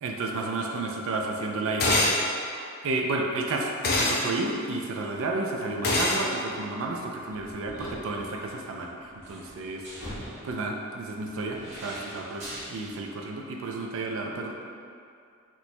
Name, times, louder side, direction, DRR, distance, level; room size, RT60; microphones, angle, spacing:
voice 1, 0.0-2.1 2.8-9.8 10.4-14.5, right 2 dB, 65° right, 1 dB, 0.4 m, -31 dB
sound 1, 1.8-2.2 3.8-4.2 5.8-6.2, left 2 dB, 50° left, 0.6 m, -23 dB
sound 2, 3.9-4.8 5.0-5.1 6.5-13.0, equal, 35° right, 1.3 m, -43 dB
3.0 x 2.2 x 4.2 m, 2.4 s
head